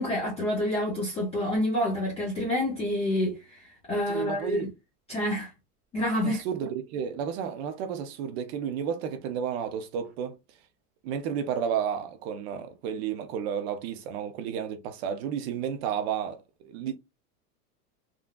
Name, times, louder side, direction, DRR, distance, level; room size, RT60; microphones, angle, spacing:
voice 1, 0.0-4.7 5.1-5.5 5.9-6.4, left 1 dB, 15° left, 0.5 m, -28 dB
voice 2, 4.1-4.7 6.2-10.4 11.0-16.9, right 8 dB, 45° right, 0.5 m, -32 dB
3.7 x 2.2 x 2.3 m
supercardioid pair, 145°, 47 cm